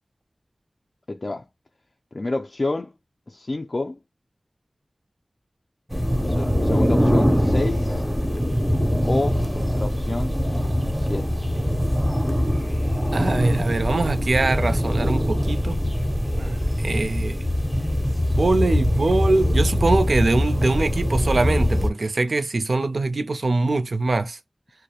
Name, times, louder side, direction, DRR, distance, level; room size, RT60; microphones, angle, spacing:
voice 1, 1.1-1.5 2.1-2.9 3.3-4.0 6.3-8.0 9.0-10.3 10.9-11.3, left 2 dB, 50° left, 0.3 m, -28 dB
sound 1, 5.9-21.9, equal, ahead, 0.5 m, -22 dB
voice 2, 13.1-15.8 16.4-17.5 18.3-24.4, right 2 dB, 75° right, 0.4 m, -23 dB
2.3 x 2.0 x 2.8 m
wide cardioid pair, 75°, 0 cm